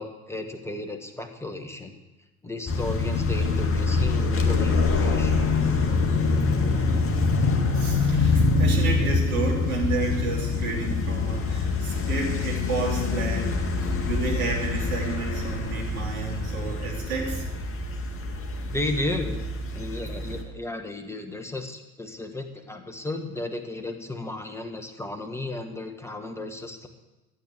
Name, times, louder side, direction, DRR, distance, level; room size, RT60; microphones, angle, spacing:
voice 1, 0.0-1.9 2.4-5.5 18.7-19.5 19.7-26.9, left 2 dB, 5° left, 6 dB, 1.6 m, -34 dB
sound 1, 2.7-20.4, left 3 dB, 30° left, 1.8 m, -25 dB
voice 2, 7.4-13.5 13.8-17.6, right 3 dB, 70° right, -3 dB, 3.8 m, -31 dB
13.5 x 8.5 x 6.7 m, 1.1 s
figure-of-eight pair, 65°, 43 cm